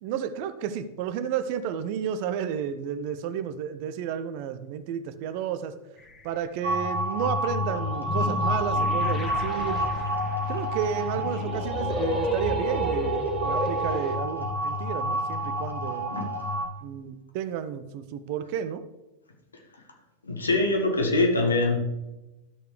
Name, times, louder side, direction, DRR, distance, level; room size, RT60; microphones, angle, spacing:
voice 1, 0.0-5.7 6.2-9.8 10.5-16.1 16.8-18.8, right 8 dB, 45° right, 12 dB, 0.6 m, -32 dB
sound 1, 6.0-6.3 7.5-14.2, equal, 20° left, 1.5 m, -33 dB
sound 2, 6.6-16.6, equal, 90° right, 1.7 m, -29 dB
voice 2, 20.3-21.8, left 2 dB, 75° left, 2 dB, 1.6 m, -23 dB
12.5 x 6.6 x 3.2 m, 1.0 s
figure-of-eight pair, 90°, 0 cm